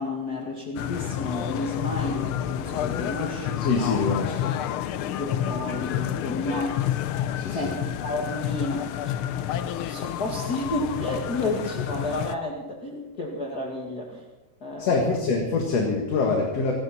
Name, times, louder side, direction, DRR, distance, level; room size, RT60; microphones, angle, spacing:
voice 1, 0.0-3.6 5.1-6.9 7.5-9.2 9.9-14.2 14.6-15.1, left 2 dB, 35° left, -1 dB, 2.2 m, -31 dB
sound 1, 0.8-12.4, left 10 dB, 90° left, 1.1 m, -29 dB
voice 2, 3.6-4.6 7.4-7.7 14.8-16.7, left 4 dB, 60° left, 1 dB, 2.9 m, -25 dB
27.0 x 12.5 x 4.3 m, 1.1 s
omnidirectional pair, 3.3 m